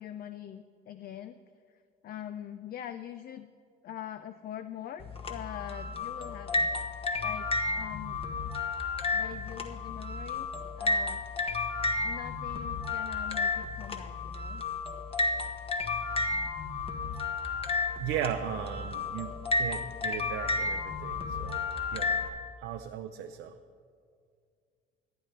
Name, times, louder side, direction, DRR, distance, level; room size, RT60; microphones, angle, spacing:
voice 1, 0.0-1.4 2.0-3.5 3.8-6.7 7.2-7.5 7.7-8.2 9.1-10.5 10.8-11.2 12.0-14.6, left 10 dB, 50° left, 11 dB, 0.5 m, -43 dB
sound 1, 5.0-22.3, left 3 dB, 30° left, 1.2 m, -32 dB
voice 2, 18.0-21.7 21.9-23.6, right 10 dB, 80° right, 5 dB, 0.6 m, -37 dB
17.5 x 11.0 x 3.3 m, 2.2 s
cardioid pair, 90°, 20 cm